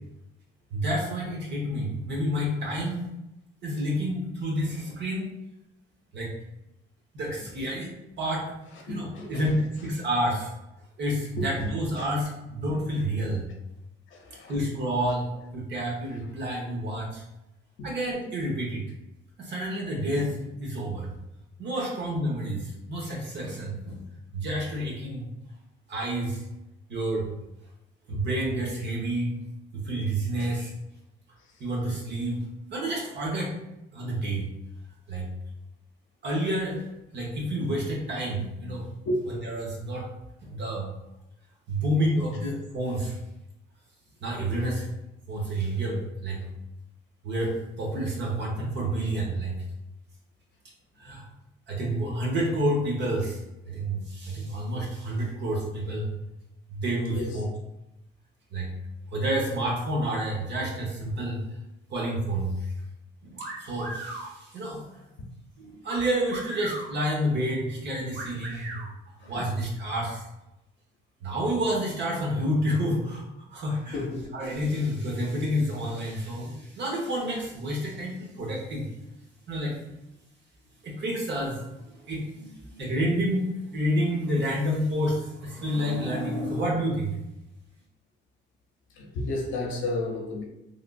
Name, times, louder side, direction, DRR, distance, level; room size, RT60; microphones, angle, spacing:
voice 1, 0.7-3.1 3.6-5.3 6.1-6.3 7.1-7.9 8.2-8.4 8.9-10.5 11.0-13.4 14.5-15.3 15.5-17.2 17.8-18.8 19.4-21.1 21.6-24.0 24.3-25.3 25.9-26.4 26.9-27.3 28.1-29.4 29.7-30.7 31.6-32.4 32.7-33.5 33.9-34.5 35.1-35.3 36.2-36.8 37.1-38.9 39.3-40.1 40.4-40.9 41.7-43.2 44.2-44.8 45.3-46.5 47.2-49.5 51.0-51.2 51.7-53.4 53.7-56.1 56.7-57.5 58.5-58.7 59.1-61.4 61.9-62.5 63.6-64.8 65.6-68.8 69.2-70.2 71.2-74.0 74.3-78.9 79.5-79.8 80.8-87.1, right 1 dB, 60° right, -2 dB, 1.0 m, -29 dB
voice 2, 8.9-9.3 11.4-11.7 12.0-12.1 14.1-14.5 17.8-17.9 30.4-30.5 39.0-39.2 57.1-57.4 69.2-69.4 73.9-74.3 88.9-90.4, left 2 dB, 80° left, 0 dB, 0.7 m, -32 dB
sound 1, 63.4-64.3 65.9-66.9 68.1-68.9, right 2 dB, 85° right, 1.0 m, -37 dB
3.5 x 2.5 x 2.4 m, 0.92 s
cardioid pair, 90°, 20 cm